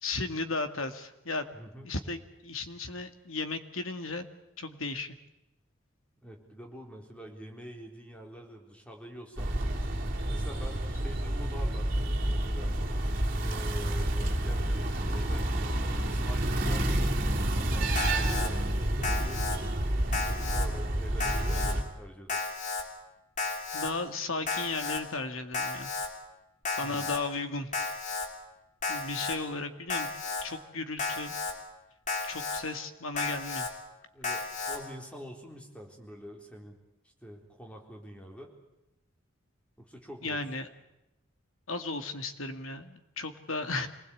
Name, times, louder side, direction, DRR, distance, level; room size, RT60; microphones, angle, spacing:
voice 1, 0.0-1.5 1.8-4.3 4.6-5.2 23.7-25.9 26.8-27.7 28.9-30.1 30.4-31.4 32.3-33.7 40.2-40.7 41.7-43.9, left 3 dB, 75° left, 8 dB, 2.1 m, -35 dB
voice 2, 1.5-1.9 6.2-9.5 10.3-12.8 13.3-17.3 17.5-19.4 20.0-22.6 26.8-27.1 34.1-36.8 37.2-38.5 39.8-40.4, equal, 5° left, 1 dB, 3.9 m, -46 dB
sound 1, 9.4-21.8, right 1 dB, 40° right, 3.5 m, -29 dB
Alarm, 17.9-18.5 19.0-19.6 20.1-20.7 21.2-21.7 22.3-22.8 23.4-23.9 24.5-25.0 25.5-26.1 26.6-27.2 27.7-28.3 28.8-29.4 29.9-30.4 31.0-31.5 32.1-32.6 33.2-33.7 34.2-34.8, left 4 dB, 35° left, 3.5 m, -33 dB
26.0 x 20.0 x 8.6 m, 0.91 s
head